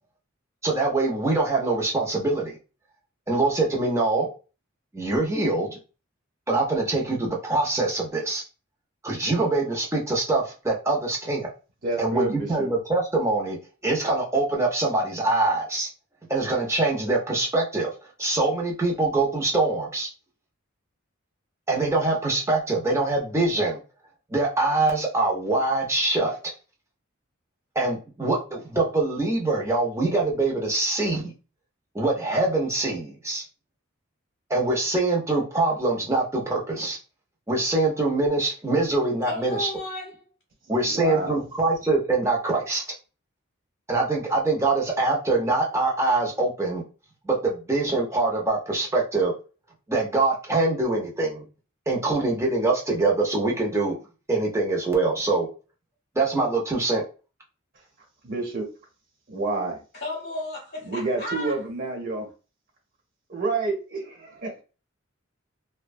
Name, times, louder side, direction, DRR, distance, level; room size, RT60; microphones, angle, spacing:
voice 1, 0.6-2.6 3.3-4.3 4.9-5.8 6.5-8.4 9.0-11.5 12.0-13.6 13.8-15.9 16.3-17.9 18.2-20.1 21.7-23.8 24.3-26.4 27.7-31.3 31.9-33.4 34.5-37.0 37.5-39.7 40.7-42.8 43.9-46.8 47.2-49.3 49.9-51.4 51.9-53.9 54.3-55.5 56.1-57.0, right 2 dB, 15° right, 0.7 m, -24 dB
voice 2, 11.8-12.7 40.8-41.4 58.2-58.7 59.3-59.8 60.8-62.2 63.3-64.6, right 3 dB, 45° right, 1.2 m, -28 dB
voice 3, 39.3-40.1 60.0-61.5, left 2 dB, 50° left, 0.9 m, -33 dB
2.7 x 2.2 x 2.6 m
head